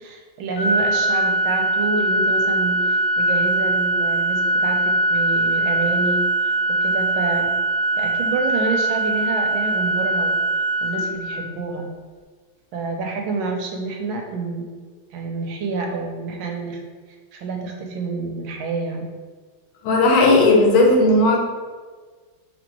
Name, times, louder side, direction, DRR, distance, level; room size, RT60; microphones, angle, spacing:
voice 1, 0.0-7.5 8.0-10.4 10.8-11.9 12.7-14.6 15.1-16.8 17.3-19.1, right 3 dB, 80° right, 2 dB, 1.4 m, -28 dB
Organ, 0.6-11.6, right 2 dB, 55° left, 1.3 m, -21 dB
voice 2, 19.8-21.4, left 2 dB, 90° left, -1 dB, 1.7 m, -15 dB
5.2 x 3.4 x 3.0 m, 1.5 s
omnidirectional pair, 2.2 m